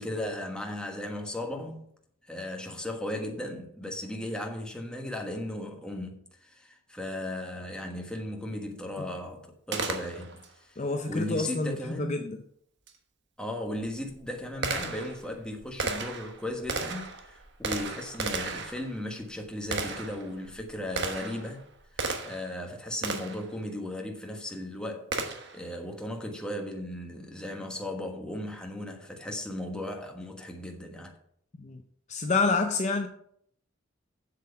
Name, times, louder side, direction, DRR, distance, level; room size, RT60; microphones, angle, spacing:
voice 1, 0.0-1.9 2.3-10.8 11.1-12.2 13.4-21.6 21.9-25.1 25.5-31.1, left 1 dB, 5° left, 1.4 m, -36 dB
Gunshot gunfire, 9.7-10.5 12.9-13.0 13.7-22.5 23.0-23.5 25.1-25.6, right 4 dB, 55° right, 1.2 m, -35 dB
voice 2, 10.8-12.4 31.5-31.8 32.1-33.1, left 3 dB, 35° left, 0.6 m, -28 dB
7.7 x 7.3 x 5.8 m
head